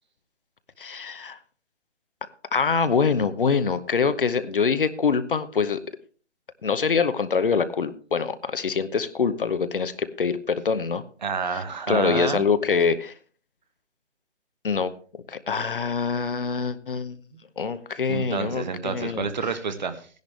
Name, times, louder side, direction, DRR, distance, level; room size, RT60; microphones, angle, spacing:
voice 1, 0.8-1.4 2.5-5.8 6.6-11.0 11.5-13.1 14.6-17.2 17.6-19.3, left 5 dB, 50° left, 12 dB, 0.9 m, -25 dB
voice 2, 11.2-12.4 18.1-20.1, right 5 dB, 40° right, 10 dB, 1.2 m, -29 dB
16.0 x 10.5 x 3.3 m, 0.41 s
figure-of-eight pair, 155°, 36 cm